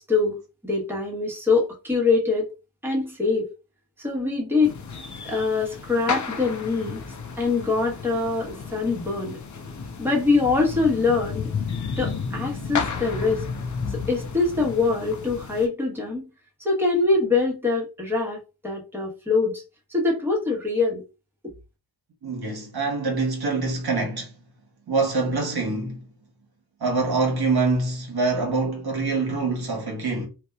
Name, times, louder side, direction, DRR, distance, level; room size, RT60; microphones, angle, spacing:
voice 1, 0.0-2.5 2.8-3.5 4.0-4.7 5.2-7.0 7.4-9.3 10.0-11.5 12.0-13.4 13.9-16.3 16.6-19.6 19.9-21.0, left 3 dB, 5° right, 1.1 m, -24 dB
sound 1, 4.6-15.7, left 5 dB, 40° left, 0.6 m, -33 dB
voice 2, 22.2-24.3 24.9-26.0 26.8-30.3, right 3 dB, 55° right, 1.0 m, -25 dB
2.6 x 2.2 x 2.3 m
supercardioid pair, 40°, 46 cm